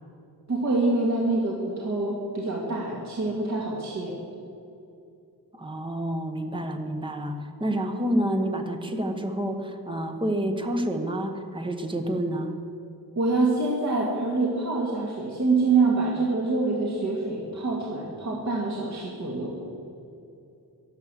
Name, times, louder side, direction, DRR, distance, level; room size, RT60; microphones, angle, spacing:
voice 1, 0.5-4.1 13.2-19.5, right 3 dB, 45° right, -3 dB, 2.0 m, -25 dB
voice 2, 5.5-12.5, right 1 dB, 15° right, 5 dB, 1.1 m, -28 dB
12.5 x 12.0 x 7.5 m, 2.7 s
wide cardioid pair, 165°, 38 cm